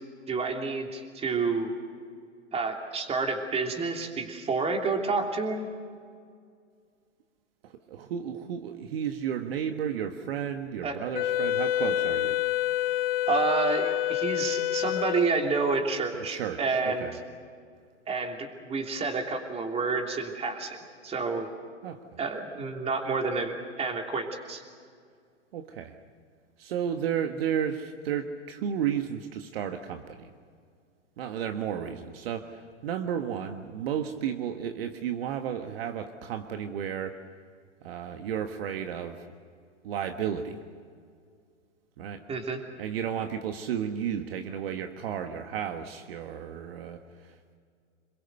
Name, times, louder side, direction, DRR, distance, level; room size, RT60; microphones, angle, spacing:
voice 1, 0.3-1.7 2.5-5.7 10.8-11.0 13.3-17.1 18.1-20.8 21.0-21.5 22.2-24.6 42.3-42.6, right 4 dB, 15° right, 3 dB, 3.1 m, -29 dB
voice 2, 7.6-12.4 16.1-17.2 21.8-22.0 25.5-26.0 26.6-30.3 31.2-37.2 37.8-39.2 39.8-40.6 42.0-42.2 42.8-47.5, right 8 dB, 55° right, 6 dB, 1.5 m, -33 dB
Wind instrument woodwind instrument, 11.1-15.7, left 13 dB, 50° left, 0.7 m, -28 dB
27.0 x 22.0 x 6.8 m, 2.2 s
hypercardioid pair, 115°, 36 cm